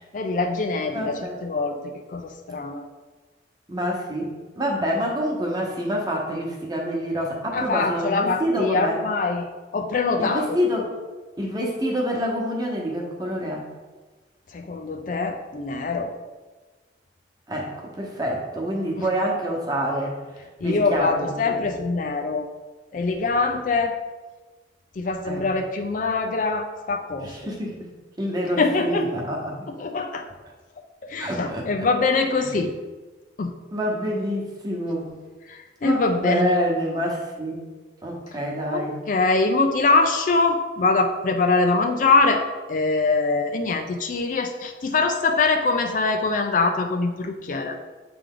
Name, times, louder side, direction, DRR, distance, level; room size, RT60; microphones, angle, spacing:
voice 1, 0.1-2.8 7.5-10.6 14.5-16.1 19.0-19.1 20.6-22.4 22.9-24.0 25.0-27.5 28.6-29.1 29.8-30.3 31.0-32.7 33.4-33.5 35.5-36.5 38.7-42.4 42.7-47.8, left 3 dB, 45° left, 5 dB, 0.4 m, -23 dB
voice 2, 0.9-1.4 3.7-9.0 10.2-10.9 11.4-13.6 17.5-20.2 20.6-21.6 25.2-25.5 27.2-27.9 28.2-29.7 31.2-31.9 32.4-32.6 33.7-35.1 35.8-37.6 38.0-39.0, equal, 20° right, -1 dB, 1.0 m, -27 dB
7.9 x 3.4 x 3.7 m, 1.3 s
head